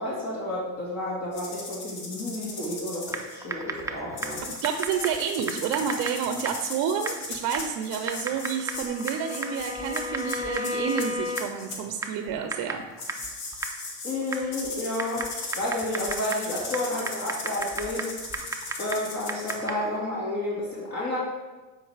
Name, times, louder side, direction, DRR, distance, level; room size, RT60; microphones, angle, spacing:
voice 1, 0.0-4.4 14.0-15.3 15.6-18.1 18.8-21.2, left 1 dB, 40° left, -6 dB, 2.1 m, -31 dB
sound 1, 1.3-3.4 4.2-11.8 13.0-19.5, left 3 dB, 70° left, 1.7 m, -38 dB
Typing, 3.1-20.0, right 3 dB, 10° right, 0.6 m, -37 dB
voice 2, 4.6-12.8, right 7 dB, 50° right, 6 dB, 0.7 m, -29 dB
Bowed string instrument, 7.9-11.8, left 3 dB, 20° left, 0.8 m, -35 dB
8.5 x 4.9 x 3.4 m, 1.2 s
hypercardioid pair, 90°, 41 cm